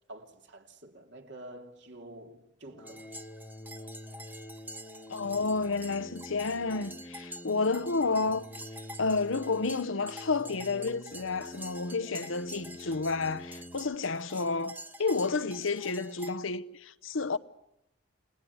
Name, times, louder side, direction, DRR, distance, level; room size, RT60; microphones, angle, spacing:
voice 1, 0.1-3.1, right 1 dB, 60° right, 2.9 m, -48 dB
sound 1, 2.7-13.9, left 1 dB, 25° left, 1.4 m, -47 dB
sound 2, 2.9-16.4, right 1 dB, 10° right, 1.1 m, -48 dB
voice 2, 5.1-8.4 9.0-17.4, left 4 dB, 80° left, 1.0 m, -30 dB
30.0 x 19.5 x 9.6 m
head